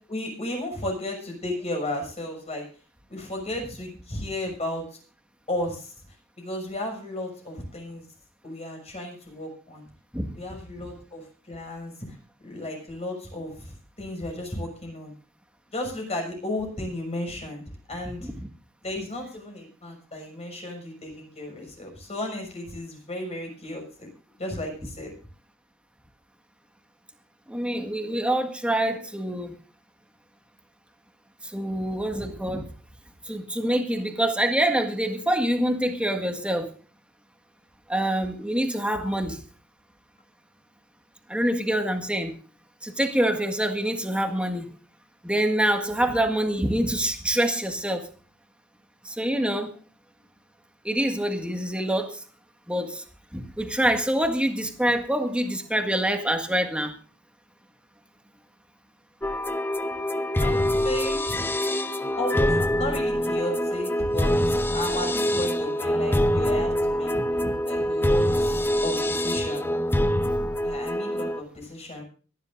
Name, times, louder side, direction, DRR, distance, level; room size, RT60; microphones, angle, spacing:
voice 1, 0.1-2.6 3.1-4.8 5.5-5.9 6.4-8.0 8.4-9.9 10.3-11.9 12.4-15.1 15.7-17.6 17.9-18.3 18.8-24.1 24.4-25.1 60.4-61.5 62.2-64.3 64.7-67.1 67.6-69.7 70.6-72.0, left 1 dB, 30° left, 2 dB, 6.4 m, -34 dB
voice 2, 27.5-29.6 31.4-32.7 33.2-36.7 37.9-39.4 41.3-42.3 42.8-44.7 45.2-48.1 49.0-49.7 50.8-52.2 52.7-53.0 53.3-56.9 60.6-60.7 67.1-67.5, right 1 dB, 5° right, 5 dB, 1.7 m, -26 dB
sound 1, 59.2-71.4, equal, 10° left, 0.8 m, -25 dB
24.0 x 11.0 x 2.6 m, 0.38 s
head